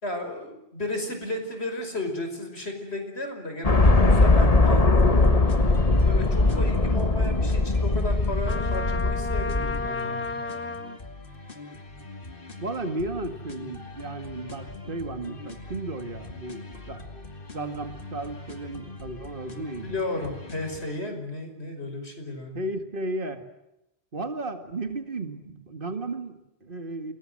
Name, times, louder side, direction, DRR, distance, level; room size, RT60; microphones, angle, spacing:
voice 1, 0.0-5.4 6.0-10.4 19.8-22.6, left 2 dB, 90° left, 5 dB, 5.7 m, -34 dB
sound 1, 3.6-9.9, left 2 dB, 35° left, 1.5 m, -20 dB
sound 2, 5.0-21.0, left 3 dB, 60° left, 2.8 m, -42 dB
Trumpet, 8.4-11.0, left 3 dB, 10° left, 1.2 m, -32 dB
voice 2, 12.6-17.1 17.5-20.0 22.5-23.4 24.1-27.1, right 2 dB, 55° right, 8 dB, 2.2 m, -34 dB
28.5 x 21.5 x 7.9 m, 0.87 s
omnidirectional pair, 1.1 m